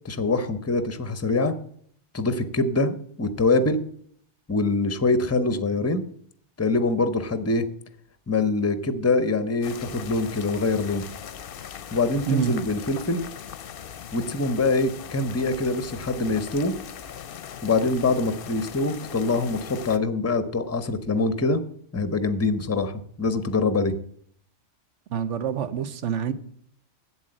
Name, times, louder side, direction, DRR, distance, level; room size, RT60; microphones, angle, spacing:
voice 1, 0.0-1.5 2.1-3.8 4.5-6.0 6.6-7.7 8.3-11.0 11.9-13.2 14.1-16.7 17.6-21.6 21.9-23.9, left 3 dB, 15° left, 0.6 m, -24 dB
sound 1, 9.6-20.0, left 8 dB, 55° left, 0.7 m, -40 dB
voice 2, 25.1-26.3, right 8 dB, 80° right, 1.1 m, -26 dB
7.9 x 7.9 x 7.6 m
omnidirectional pair, 1.2 m